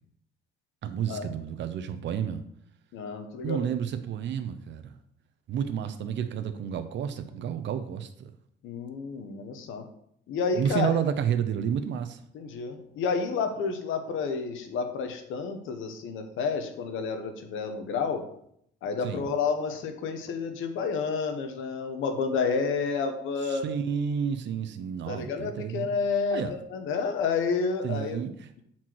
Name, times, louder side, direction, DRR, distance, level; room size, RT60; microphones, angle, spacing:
voice 1, 0.8-2.4 3.4-4.9 5.5-8.1 10.5-12.2 19.0-19.3 23.4-25.9 26.3-26.5 27.8-28.6, right 8 dB, 65° right, 9 dB, 0.7 m, -30 dB
voice 2, 2.9-3.7 8.6-9.8 10.3-11.0 12.3-18.2 18.8-23.7 25.1-28.2, left 5 dB, 85° left, 6 dB, 1.0 m, -30 dB
7.5 x 4.4 x 4.6 m, 0.71 s
cardioid pair, 90°, 20 cm